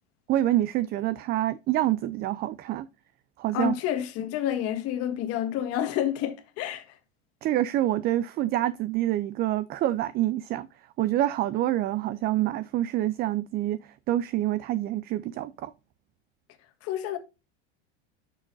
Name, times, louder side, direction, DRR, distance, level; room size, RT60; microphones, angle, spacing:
voice 1, 0.3-2.9 3.4-3.7 7.4-10.7 11.0-13.8 14.1-15.7, right 14 dB, 30° right, 0.4 m, -26 dB
voice 2, 3.5-7.0 16.8-17.2, left 11 dB, 45° left, 1.7 m, -29 dB
9.2 x 6.5 x 2.6 m
supercardioid pair, 135°, 32 cm